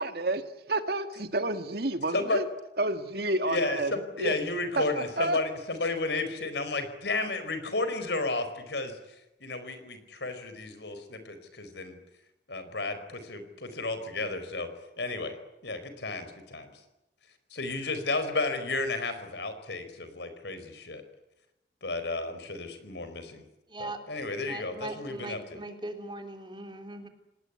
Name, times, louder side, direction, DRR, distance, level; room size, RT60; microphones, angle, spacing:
voice 1, 0.0-2.5 2.8-4.3 4.8-5.4, right 2 dB, 60° right, 8 dB, 2.0 m, -30 dB
voice 2, 3.5-9.0 9.4-12.0 12.5-14.7 15.0-15.3 15.6-16.7 17.5-21.0 21.8-23.4 23.8-25.6, left 3 dB, 70° left, 9 dB, 4.7 m, -32 dB
voice 3, 23.7-24.0 24.5-27.1, right 2 dB, 25° right, 5 dB, 3.3 m, -40 dB
28.0 x 19.0 x 9.7 m, 0.91 s
head